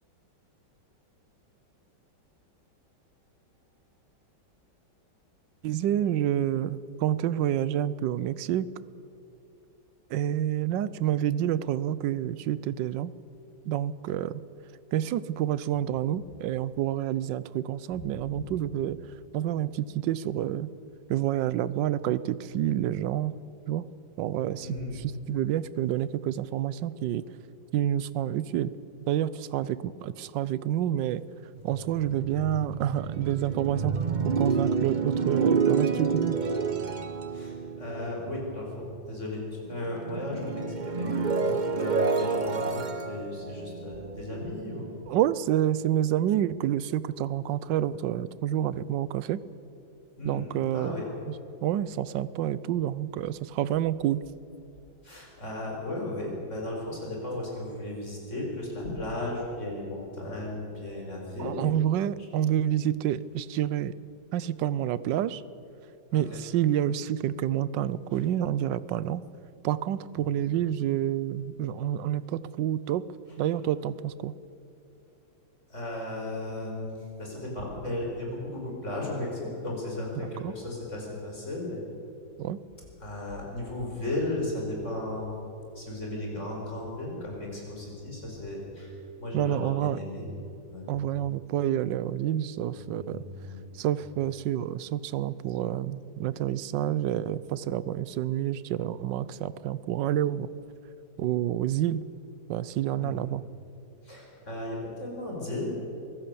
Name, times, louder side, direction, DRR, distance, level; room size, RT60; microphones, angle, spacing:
voice 1, 5.6-8.7 10.1-13.1 13.7-14.4 14.9-19.0 19.3-20.7 21.1-23.3 23.7-23.9 24.2-27.2 27.7-28.7 29.1-31.2 31.6-34.0 34.2-36.4 45.1-49.4 50.2-51.0 51.6-54.2 61.4-63.9 64.3-65.4 66.1-69.2 69.6-73.0 73.4-74.3 80.2-80.5 82.4-82.6 89.3-90.0 90.9-93.2 93.7-100.5 101.2-102.0 102.5-103.4, right 11 dB, 75° right, 17 dB, 1.3 m, -28 dB
voice 2, 24.6-24.9 37.3-44.9 50.2-50.5 50.7-51.1 55.0-61.7 66.1-66.2 75.7-81.8 83.0-85.3 85.8-90.3 90.7-90.9 92.8-93.7 103.0-103.2 104.0-105.7, left 1 dB, 35° left, -2 dB, 5.3 m, -35 dB
sound 1, 31.6-39.3 39.6-44.8, right 5 dB, 45° right, 0.6 m, -29 dB
24.0 x 16.0 x 6.9 m, 2.8 s
omnidirectional pair, 2.1 m